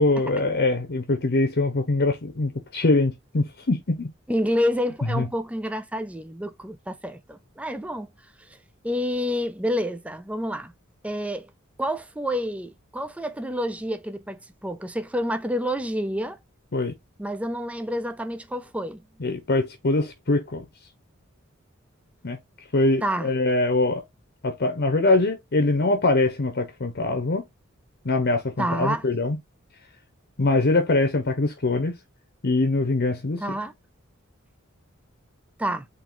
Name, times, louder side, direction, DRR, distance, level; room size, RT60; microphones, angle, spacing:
voice 1, 0.0-4.1 5.1-5.3 16.7-16.9 19.2-20.6 22.2-22.4 22.7-24.0 24.4-27.4 28.0-29.4 30.4-32.0 32.4-33.4, left 2 dB, 50° left, 0.9 m, -23 dB
voice 2, 4.3-8.1 8.8-10.7 11.0-11.5 11.8-16.4 17.2-19.0 23.0-23.3 28.6-29.0 33.4-33.7 35.6-35.9, equal, 5° right, 0.4 m, -28 dB
4.0 x 3.0 x 4.4 m
head